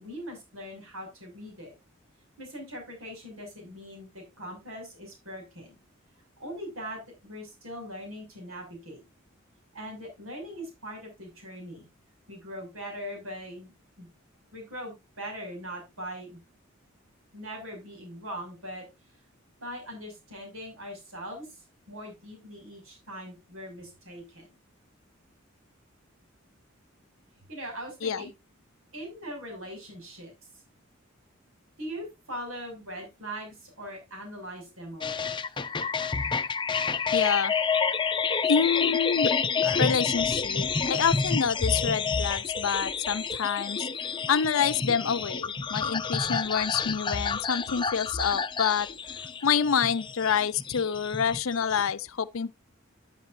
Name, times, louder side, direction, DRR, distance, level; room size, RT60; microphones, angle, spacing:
voice 1, 0.0-1.7 2.4-5.8 6.4-9.0 9.7-11.9 12.3-13.7 14.0-14.1 14.5-16.4 17.3-18.8 19.6-21.6 21.9-24.5 27.5-28.3 28.9-30.3 31.8-35.4, equal, 90° right, 6.4 m, -41 dB
sound 1, 35.0-51.9, left 5 dB, 25° left, 0.6 m, -29 dB
voice 2, 37.1-37.5 38.5-39.3 39.6-43.9 44.3-48.9 49.4-52.5, left 7 dB, 85° left, 0.6 m, -27 dB
11.5 x 10.5 x 2.6 m
head